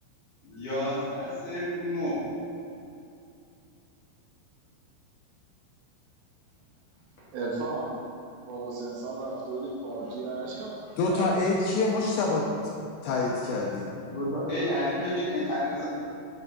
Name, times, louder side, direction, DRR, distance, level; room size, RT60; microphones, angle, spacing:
voice 1, 0.4-2.3 14.1-15.9, left 1 dB, 55° left, -10 dB, 2.4 m, -30 dB
voice 2, 7.3-7.9 8.5-10.8 11.1-11.3, right 3 dB, 80° right, -4 dB, 2.6 m, -34 dB
voice 3, 11.0-12.8 13.0-13.9, left 2 dB, 80° left, -1 dB, 2.5 m, -26 dB
7.2 x 5.6 x 4.1 m, 2.6 s
omnidirectional pair, 5.4 m